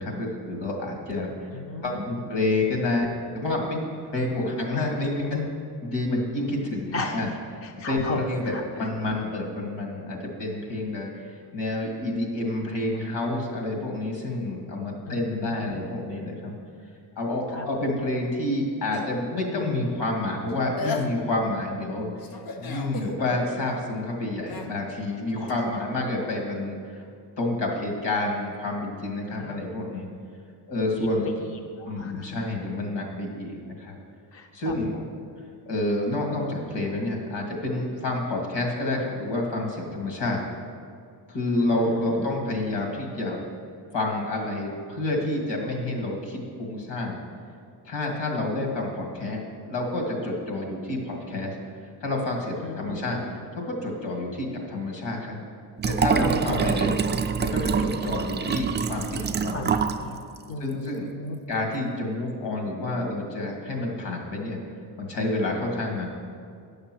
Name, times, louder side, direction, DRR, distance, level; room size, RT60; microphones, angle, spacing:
voice 1, 0.0-1.5 1.8-3.1 3.3-3.8 4.1-5.4 5.8-7.3 7.9-16.5 17.2-22.1 22.6-27.0 27.4-30.1 30.7-31.3 31.9-34.0 34.5-34.9 35.7-40.4 41.3-43.4 43.9-47.2 47.9-49.4 49.7-51.5 52.0-53.2 53.7-55.4 55.8-57.0 57.4-59.6 60.6-61.1 61.5-64.6 65.0-66.1, left 2 dB, 70° left, 1 dB, 2.2 m, -28 dB
voice 2, 1.5-2.2 6.9-8.9 15.1-15.9 17.5-17.9 25.6-25.7 29.3-29.6 31.0-31.3 31.8-32.4 34.3-35.0 41.6-42.3 52.6-53.4 56.2-56.6 59.5-60.2 60.5-61.4, left 3 dB, 35° left, 4 dB, 0.6 m, -36 dB
sound 1, 18.9-19.5 20.5-20.6 20.8-21.5 22.2-23.1 24.5-24.7 25.5-25.6, left 3 dB, 55° left, 0.9 m, -35 dB
Liquid, 55.8-60.0 60.4-60.5, right 6 dB, 25° right, 0.4 m, -25 dB
10.5 x 6.6 x 6.2 m, 2.3 s
cardioid pair, 140°, 42 cm